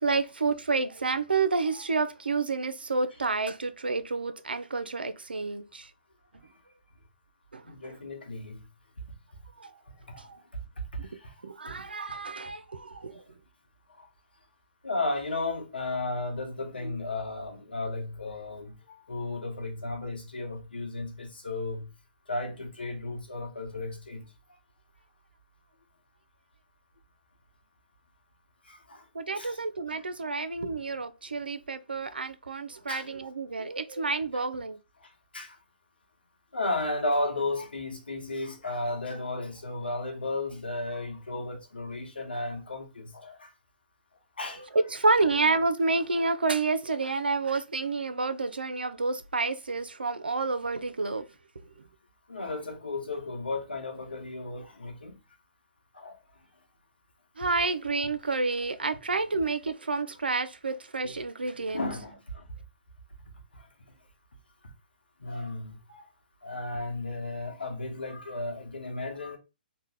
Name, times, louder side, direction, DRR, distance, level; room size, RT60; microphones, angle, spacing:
voice 1, 0.0-5.9 7.5-8.0 9.6-9.7 10.1-10.4 11.0-11.1 11.4-13.2 29.1-34.8 44.7-51.3 57.4-61.9, right 3 dB, 90° right, 0.4 m, -29 dB
voice 2, 7.6-8.7 9.8-10.6 10.9-11.4 11.8-11.9 13.1-13.2 13.9-14.1 14.8-21.9 22.3-24.3 28.6-29.1 29.3-29.6 29.9-30.1 30.6-30.7 32.8-33.1 35.0-35.6 36.5-43.5 44.4-44.8 52.3-55.2 55.9-56.2 61.7-62.5 63.5-63.7 64.6-64.7 65.2-66.1 66.4-69.4, left 2 dB, 90° left, 1.1 m, -34 dB
2.9 x 2.1 x 3.5 m
hypercardioid pair, 130°, 5 cm